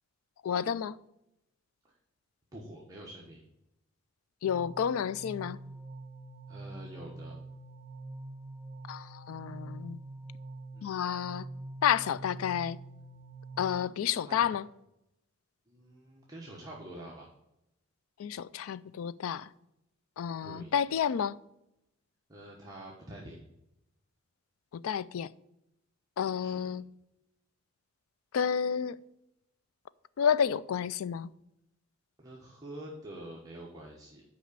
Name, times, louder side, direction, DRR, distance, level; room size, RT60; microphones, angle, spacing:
voice 1, 0.4-1.0 4.4-5.6 8.9-10.0 10.8-11.5 11.8-12.8 13.6-14.7 18.2-19.5 20.2-21.4 24.8-25.3 26.2-26.8 28.3-29.0 30.2-31.3, left 8 dB, 80° left, 0.4 m, -30 dB
voice 2, 2.5-3.4 6.5-7.4 10.7-10.9 14.0-14.6 15.7-17.3 20.4-20.7 22.3-23.4 26.4-26.6 32.2-34.2, right 1 dB, 15° right, 1.1 m, -46 dB
sound 1, 4.5-13.7, right 2 dB, 35° right, 0.8 m, -45 dB
6.2 x 4.9 x 6.6 m
head